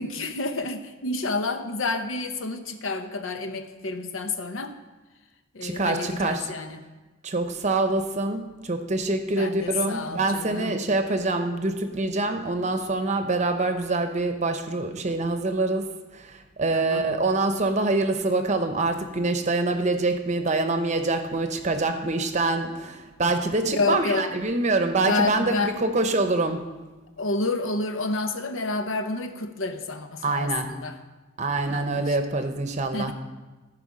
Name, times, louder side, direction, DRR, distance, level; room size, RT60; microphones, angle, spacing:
voice 1, 0.0-4.7 5.5-6.8 9.4-10.7 16.7-17.0 23.7-24.2 25.1-25.7 27.2-31.0 31.7-32.2 32.9-33.1, left 3 dB, 85° left, 8 dB, 0.8 m, -29 dB
voice 2, 5.6-6.5 7.2-15.9 16.1-26.7 30.2-30.7 31.4-33.1, right 2 dB, 35° right, 8 dB, 0.7 m, -25 dB
14.5 x 4.9 x 4.9 m, 1.2 s
head